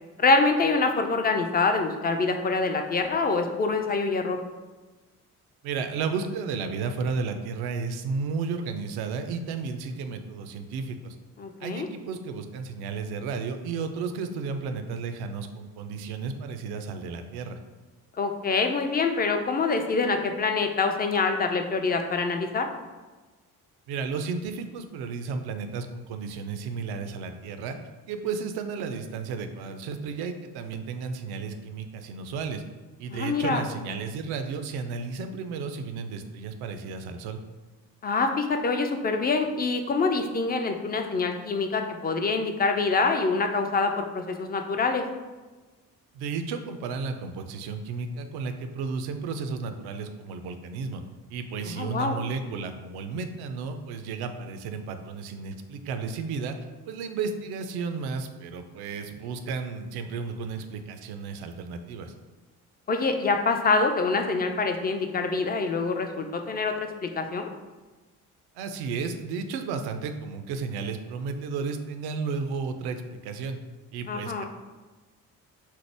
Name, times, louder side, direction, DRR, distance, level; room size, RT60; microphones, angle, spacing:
voice 1, 0.2-4.4 11.4-11.9 18.2-22.7 33.1-33.6 38.0-45.1 51.6-52.2 62.9-66.7 67.0-67.5 74.1-74.5, left 4 dB, 20° left, 5 dB, 0.4 m, -25 dB
voice 2, 5.6-11.2 11.6-17.6 23.9-27.8 28.1-32.6 33.0-37.4 46.1-51.0 51.3-56.6 56.8-62.1 68.5-73.6 73.9-74.5, right 5 dB, 55° right, 7 dB, 0.5 m, -33 dB
4.3 x 2.0 x 3.3 m, 1.3 s
figure-of-eight pair, 45°, 45 cm